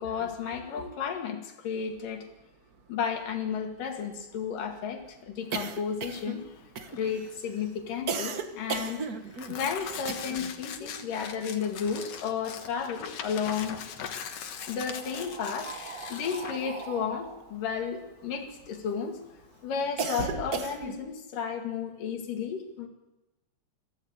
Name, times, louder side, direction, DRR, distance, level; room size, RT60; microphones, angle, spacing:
voice 1, 0.0-2.3 2.9-6.4 7.0-9.1 9.5-13.8 14.7-15.7 16.1-19.2 19.6-22.9, left 6 dB, 80° left, 4 dB, 3.7 m, -33 dB
sound 1, 2.4-2.5 2.7-2.8 3.1-10.6 10.9-12.5 12.8-13.7 14.5-19.0 19.4-21.1, right 5 dB, 75° right, 0.8 m, -38 dB
Tearing, 5.4-19.7, left 7 dB, 55° left, 2.1 m, -42 dB
23.5 x 15.0 x 8.1 m, 1.0 s
omnidirectional pair, 3.8 m